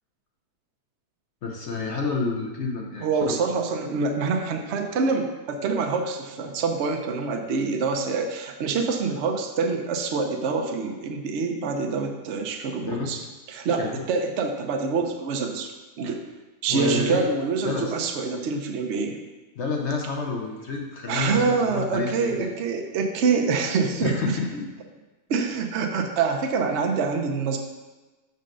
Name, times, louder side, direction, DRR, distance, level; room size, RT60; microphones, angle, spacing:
voice 1, 1.4-3.4 12.8-13.3 13.8-14.0 16.7-17.2 17.6-17.9 19.6-22.6 24.0-24.7, left 4 dB, 55° left, 0 dB, 0.9 m, -29 dB
voice 2, 3.0-13.2 13.5-16.2 16.6-19.2 21.1-24.4 25.3-27.6, right 4 dB, 60° right, 4 dB, 0.8 m, -26 dB
6.4 x 5.3 x 3.8 m, 1.2 s
omnidirectional pair, 1.8 m